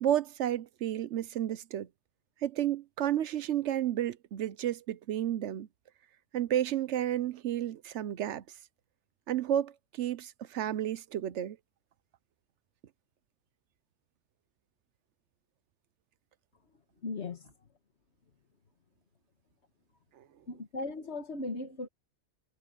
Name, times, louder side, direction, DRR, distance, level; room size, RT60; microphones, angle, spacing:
voice 1, 0.0-1.9 2.4-5.7 6.3-8.4 9.3-11.6 20.2-20.3, right 11 dB, 85° right, 1.0 m, -31 dB
voice 2, 17.0-17.5 20.5-21.9, left 3 dB, 70° left, 1.7 m, -37 dB
omnidirectional pair, 1.2 m